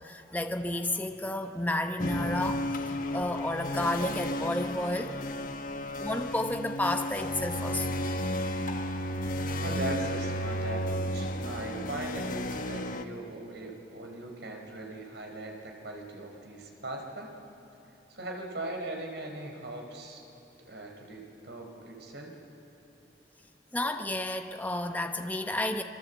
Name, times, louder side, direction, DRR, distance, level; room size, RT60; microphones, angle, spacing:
voice 1, 0.0-2.6 3.1-5.2 6.0-7.8 23.7-25.8, left 1 dB, 10° left, 5 dB, 0.8 m, -31 dB
sound 1, 2.0-13.0, left 1 dB, 50° left, 1.2 m, -33 dB
voice 2, 9.6-17.3 18.1-20.2 20.7-22.4, right 2 dB, 80° right, 2 dB, 4.2 m, -39 dB
28.0 x 23.5 x 8.1 m, 3.0 s
head